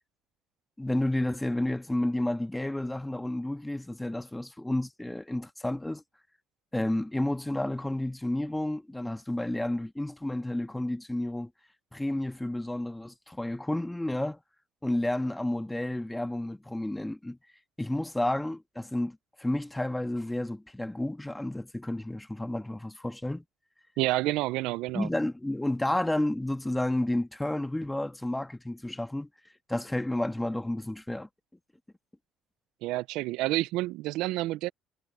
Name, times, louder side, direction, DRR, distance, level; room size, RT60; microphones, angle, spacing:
voice 1, 0.8-6.0 6.7-11.5 11.9-14.4 14.8-17.4 17.8-23.4 24.9-29.3 29.7-31.3, left 1 dB, 10° left, 1.7 m, -31 dB
voice 2, 24.0-25.1 32.8-34.7, right 18 dB, 80° right, 0.5 m, -29 dB
supercardioid pair, 90°, 0 cm